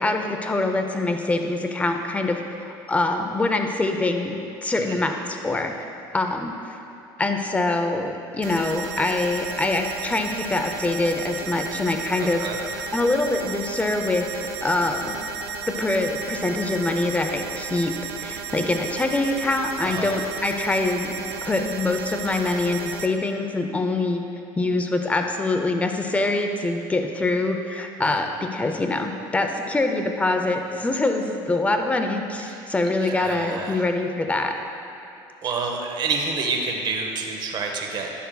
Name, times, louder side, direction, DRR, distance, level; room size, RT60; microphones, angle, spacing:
voice 1, 0.0-5.9 6.1-6.8 7.2-12.4 12.9-15.2 15.8-17.9 18.2-21.1 21.4-24.2 24.6-34.5, left 2 dB, 10° left, 4 dB, 0.6 m, -24 dB
sound 1, 8.4-23.1, right 5 dB, 80° right, 0.5 m, -34 dB
voice 2, 12.2-12.6 19.9-20.1 28.0-28.2 32.4-32.6 33.0-33.8 35.4-38.1, right 4 dB, 40° right, 1 dB, 0.8 m, -29 dB
9.9 x 6.8 x 2.3 m, 2.9 s
supercardioid pair, 105°, 11 cm